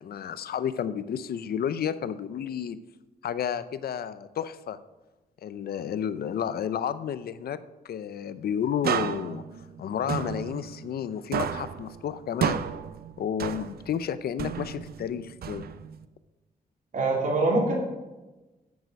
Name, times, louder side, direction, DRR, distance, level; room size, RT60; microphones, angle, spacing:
voice 1, 0.0-2.8 3.2-4.8 5.4-7.6 7.8-9.4 9.8-12.6 13.2-15.6, left 8 dB, 80° left, 15 dB, 0.5 m, -31 dB
sound 1, 8.8-11.1 11.3-14.0 14.4-16.0, right 8 dB, 80° right, 0.5 m, -32 dB
voice 2, 16.9-17.8, right 2 dB, 55° right, -3 dB, 3.3 m, -24 dB
9.6 x 8.2 x 5.2 m, 1.1 s
cardioid pair, 80°, 16 cm